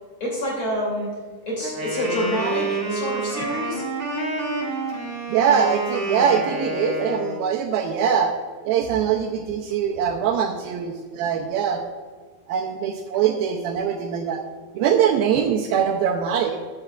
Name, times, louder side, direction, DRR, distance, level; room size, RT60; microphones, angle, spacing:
voice 1, 0.2-1.1 1.5-3.8 11.2-11.3, equal, 35° left, -4 dB, 3.2 m, -27 dB
Wind instrument woodwind instrument, 1.6-7.5, right 2 dB, 45° right, 0.9 m, -28 dB
voice 2, 5.3-8.3 8.7-11.8 12.5-14.4 14.7-16.6, right 8 dB, 80° right, 1 dB, 2.3 m, -22 dB
14.5 x 10.5 x 2.4 m, 1.5 s
omnidirectional pair, 4.6 m